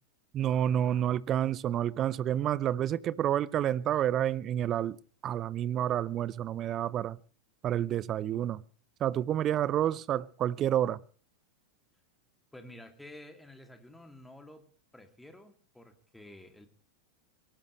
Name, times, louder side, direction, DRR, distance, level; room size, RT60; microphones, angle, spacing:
voice 1, 0.3-5.0 5.2-7.2 7.6-8.6 9.0-11.0, right 11 dB, 30° right, 0.8 m, -29 dB
voice 2, 12.5-14.7 14.9-16.7, left 1 dB, 5° left, 2.7 m, -51 dB
23.0 x 19.0 x 3.3 m
figure-of-eight pair, 90°, 0 cm